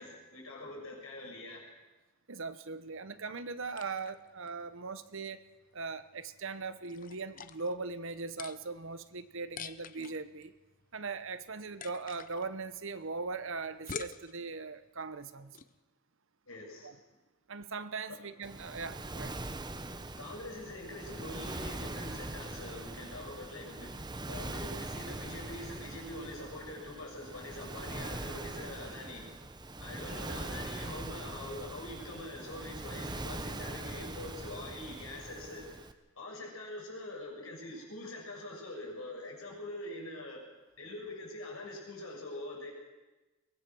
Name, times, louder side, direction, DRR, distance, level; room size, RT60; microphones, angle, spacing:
voice 1, 0.0-1.6 16.5-17.0 18.1-18.2 20.2-24.0 24.3-29.3 29.8-35.8 36.2-40.4 40.8-42.7, left 1 dB, 70° left, -1 dB, 7.0 m, -44 dB
voice 2, 2.3-5.4 5.7-10.5 10.9-15.6 16.8-16.9 17.5-19.3, right 4 dB, 60° right, 12 dB, 1.0 m, -40 dB
sound 1, 2.9-15.8, left 6 dB, 40° left, 0.8 m, -50 dB
Waves surf, 18.4-35.9, right 2 dB, 20° right, 1.0 m, -42 dB
23.0 x 19.0 x 6.3 m, 1.1 s
head